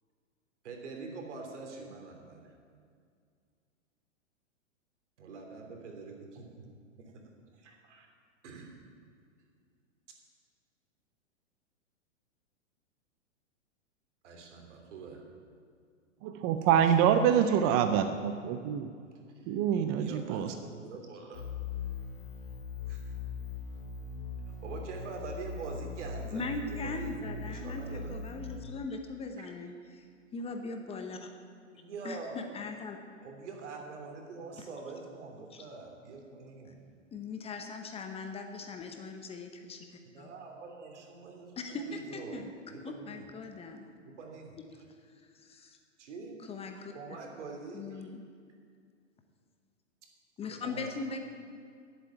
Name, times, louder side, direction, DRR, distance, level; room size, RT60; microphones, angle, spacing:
voice 1, 0.6-2.5 5.2-6.7 7.0-7.2 7.5-8.1 8.4-8.8 14.2-15.2 16.7-17.8 19.3-19.5 20.0-21.4 22.9-23.1 24.6-27.1 27.5-28.2 29.4-29.5 31.7-32.4 33.2-36.8 40.1-42.4 42.7-43.2 44.0-44.6 46.0-46.4 46.9-48.0 50.5-50.9, right 4 dB, 70° right, 2 dB, 3.0 m, -45 dB
voice 2, 16.2-18.9 19.5-20.5, right 8 dB, 25° right, 8 dB, 0.4 m, -26 dB
sound 1, 21.3-28.6, left 4 dB, 50° left, 3.6 m, -40 dB
voice 3, 26.3-27.8 28.1-30.1 30.3-31.3 32.0-33.0 34.6-34.7 35.5-35.7 37.1-39.8 40.2-40.3 41.6-42.5 42.8-43.9 45.3-45.8 46.4-46.9 47.7-48.2 50.4-51.2, left 3 dB, 15° left, 5 dB, 0.9 m, -40 dB
11.0 x 8.1 x 9.0 m, 2.2 s
hypercardioid pair, 130°, 37 cm